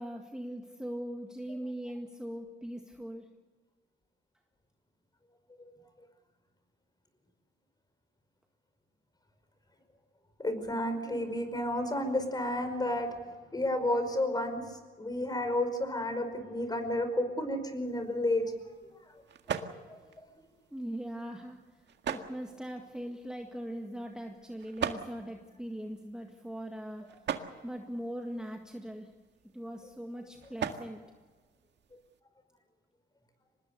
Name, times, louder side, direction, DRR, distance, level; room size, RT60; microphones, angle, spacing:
voice 1, 0.0-3.4 20.7-21.6 22.1-27.2 27.6-29.1 29.5-31.0, equal, 5° right, 3 dB, 1.9 m, -40 dB
voice 2, 10.4-14.6 15.0-18.5 19.9-20.0 27.4-27.5, left 1 dB, 20° left, 8 dB, 5.1 m, -31 dB
sound 1, 17.8-32.2, right 8 dB, 60° right, 1.9 m, -43 dB
25.0 x 20.5 x 6.8 m, 1.4 s
cardioid pair, 90°, 20 cm